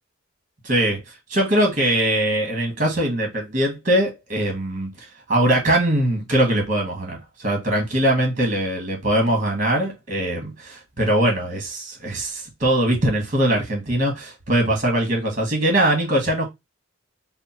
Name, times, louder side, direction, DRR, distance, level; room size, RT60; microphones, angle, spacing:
voice 1, 0.6-1.0 1.3-4.9 5.3-16.5, right 1 dB, 40° right, 1.4 m, -21 dB
3.6 x 2.1 x 4.1 m
head